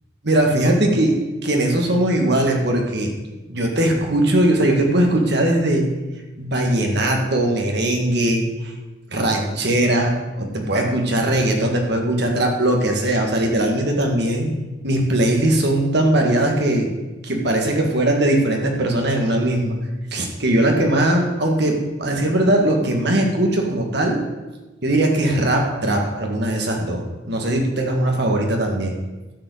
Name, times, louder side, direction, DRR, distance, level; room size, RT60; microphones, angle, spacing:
voice 1, 0.2-3.1 3.5-5.9 6.4-8.7 9.1-14.5 14.8-16.9 17.2-19.8 20.1-24.2 24.8-28.9, right 1 dB, 55° right, 2 dB, 2.0 m, -20 dB
12.5 x 5.1 x 8.0 m, 1.1 s
head